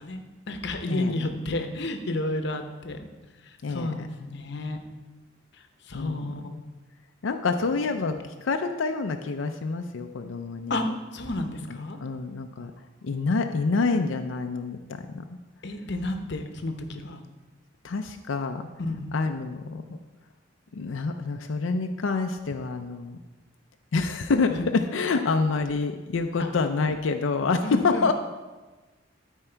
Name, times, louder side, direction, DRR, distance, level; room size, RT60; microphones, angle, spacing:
voice 1, 0.0-3.1 3.5-4.8 5.9-6.4 8.1-8.2 10.7-10.9 11.1-12.0 15.6-17.2 18.8-19.1 24.5-24.7 26.4-26.5 27.6-28.1, left 2 dB, 60° left, 6 dB, 0.9 m, -31 dB
voice 2, 3.6-4.1 5.9-6.6 7.2-10.8 11.7-12.7 13.0-15.2 17.8-18.7 19.1-20.0 20.7-23.2 23.9-28.1, left 4 dB, 80° left, 6 dB, 0.5 m, -27 dB
12.5 x 4.5 x 4.5 m, 1.2 s
head